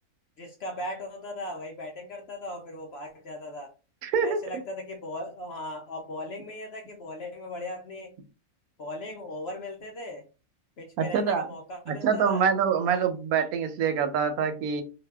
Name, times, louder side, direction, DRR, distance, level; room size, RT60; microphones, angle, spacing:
voice 1, 0.4-3.7 4.2-8.1 8.8-10.3 10.8-12.4 12.8-13.0, left 1 dB, 65° left, 2 dB, 0.6 m, -38 dB
voice 2, 4.0-4.4 11.0-11.5 11.9-14.8, right 6 dB, 85° right, 8 dB, 1.1 m, -25 dB
2.7 x 2.2 x 3.3 m, 0.33 s
omnidirectional pair, 1.5 m